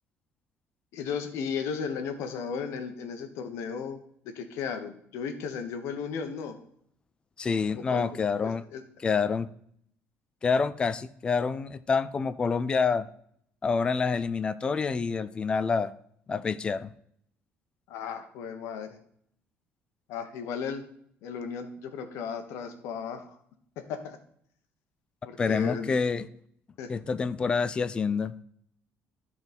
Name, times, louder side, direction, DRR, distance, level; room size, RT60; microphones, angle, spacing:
voice 1, 0.9-4.0 4.2-6.5 7.7-8.0 8.4-8.8 17.9-19.0 20.1-20.8 21.2-23.4 23.8-24.2 25.2-25.9 26.8-26.9, left 6 dB, 80° left, 7 dB, 1.2 m, -35 dB
voice 2, 7.4-8.6 9.0-9.5 10.4-13.1 13.6-15.9 16.3-16.9 25.4-26.3 26.9-28.3, left 5 dB, 20° left, 15 dB, 0.3 m, -27 dB
12.0 x 4.1 x 5.2 m, 0.68 s
cardioid pair, 175°, 5 cm